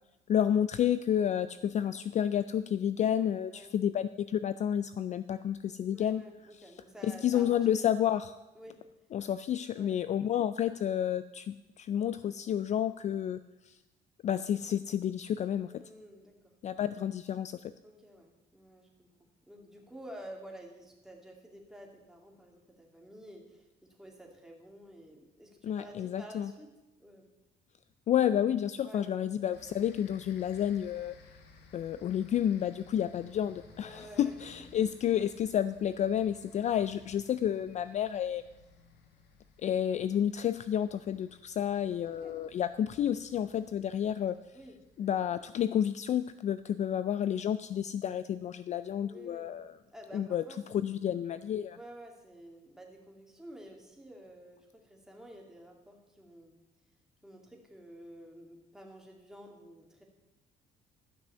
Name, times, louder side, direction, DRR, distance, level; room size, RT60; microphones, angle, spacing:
voice 1, 0.3-6.2 7.0-8.3 9.1-13.4 13.7-13.8 14.2-15.8 16.6-17.7 25.6-26.5 28.1-31.1 31.7-38.4 39.6-44.4 45.0-49.7 50.1-50.4 50.8-51.8, left 10 dB, 45° left, 13 dB, 0.4 m, -30 dB
voice 2, 5.9-7.9 8.6-8.8 9.7-9.9 15.7-16.5 17.8-26.7 27.0-27.3 28.8-29.2 33.8-34.3 42.1-42.4 44.5-44.8 49.0-49.6 49.9-51.0 51.7-56.6 57.2-60.0, equal, 5° right, 0 dB, 2.4 m, -51 dB
sound 1, 29.5-46.3, left 4 dB, 80° left, 1.6 m, -59 dB
12.5 x 6.1 x 6.8 m, 1.0 s
cardioid pair, 110°, 17 cm